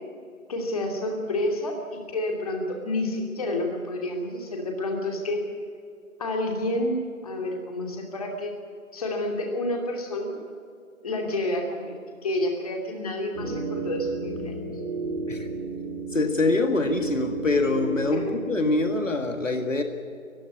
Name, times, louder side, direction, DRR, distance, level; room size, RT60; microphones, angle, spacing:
voice 1, 0.5-5.5 6.2-8.5 8.9-10.4 11.0-11.9 12.2-14.6 18.1-18.4, left 1 dB, 25° left, 2 dB, 2.9 m, -29 dB
sound 1, 13.3-19.3, right 3 dB, 15° right, 2.5 m, -32 dB
voice 2, 16.1-19.8, left 3 dB, 65° left, 6 dB, 2.0 m, -24 dB
20.0 x 15.5 x 9.6 m, 2.4 s
figure-of-eight pair, 155°, 41 cm